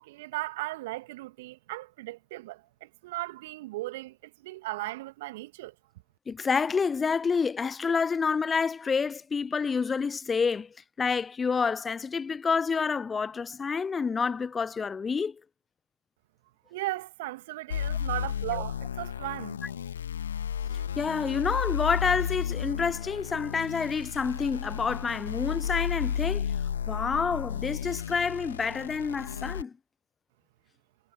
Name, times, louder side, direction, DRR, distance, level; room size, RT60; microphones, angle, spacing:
voice 1, 0.0-5.7 16.7-19.6, right 18 dB, 45° right, 2.4 m, -37 dB
voice 2, 6.3-10.7 11.0-15.4 18.5-18.6 21.0-26.5 26.9-29.7, left 5 dB, 10° left, 0.6 m, -28 dB
sound 1, 17.7-29.6, left 8 dB, 60° left, 2.1 m, -33 dB
figure-of-eight pair, 115°, 0 cm